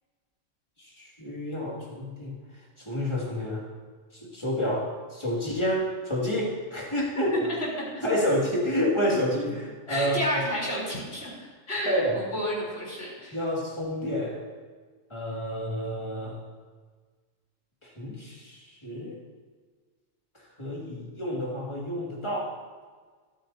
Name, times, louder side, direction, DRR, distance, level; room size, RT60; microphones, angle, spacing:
voice 1, 1.0-2.3 2.8-3.7 4.1-7.3 8.0-10.2 11.9-12.2 13.3-14.4 15.1-16.4 17.8-19.2 20.6-22.5, equal, 20° left, -3 dB, 2.4 m, -29 dB
voice 2, 7.1-7.7 9.9-11.3 11.7-13.4, equal, 50° left, -5 dB, 4.2 m, -31 dB
22.5 x 8.9 x 2.8 m, 1.5 s
omnidirectional pair, 1.3 m